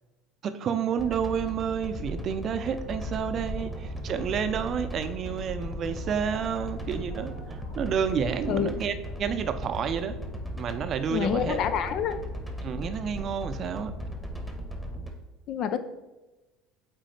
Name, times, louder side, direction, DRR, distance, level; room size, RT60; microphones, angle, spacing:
voice 1, 0.4-10.2 10.5-11.6 12.6-13.9, right 7 dB, 45° right, 10 dB, 0.5 m, -30 dB
sound 1, 1.0-15.1, equal, 5° left, 1.2 m, -37 dB
sound 2, 2.8-8.7, left 2 dB, 85° left, 2.1 m, -44 dB
voice 2, 11.1-12.2 15.5-15.8, left 8 dB, 55° left, 11 dB, 0.5 m, -27 dB
7.6 x 4.1 x 3.2 m, 1.1 s
hypercardioid pair, 75°, 0 cm